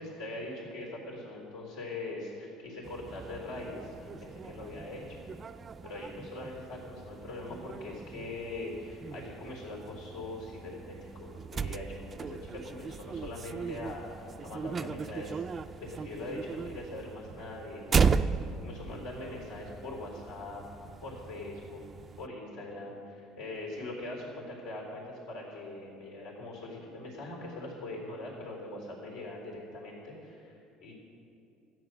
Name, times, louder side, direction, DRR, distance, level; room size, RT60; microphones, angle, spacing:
voice 1, 0.0-5.2 5.8-15.5 15.8-18.0 18.6-20.6 21.0-21.8 22.2-30.9, left 2 dB, 80° left, -1 dB, 3.7 m, -42 dB
sound 1, 2.8-22.3, right 5 dB, 30° right, 0.4 m, -36 dB
13.5 x 9.7 x 6.2 m, 2.8 s
cardioid pair, 125°, 0 cm